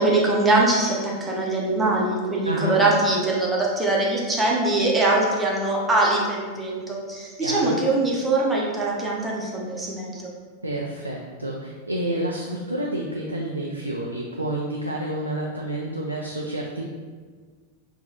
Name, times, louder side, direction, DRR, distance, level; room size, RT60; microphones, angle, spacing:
voice 1, 0.0-10.3, right 2 dB, 10° right, -3 dB, 0.8 m, -22 dB
voice 2, 2.4-2.8 7.4-7.8 10.6-16.9, right 1 dB, 85° right, -2 dB, 0.3 m, -29 dB
3.9 x 2.3 x 3.8 m, 1.5 s
figure-of-eight pair, 90°, 0 cm